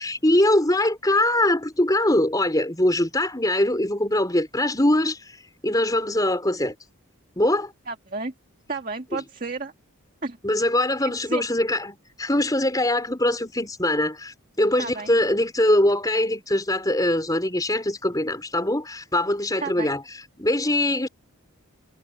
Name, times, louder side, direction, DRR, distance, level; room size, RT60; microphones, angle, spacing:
voice 1, 0.0-6.7 7.4-7.7 9.1-9.2 10.4-21.1, left 1 dB, 15° left, 4.1 m, -22 dB
voice 2, 7.9-8.3 8.7-9.7 10.2-10.4 11.3-11.4 14.8-15.1 19.6-19.9, right 3 dB, 40° right, 2.0 m, -31 dB
head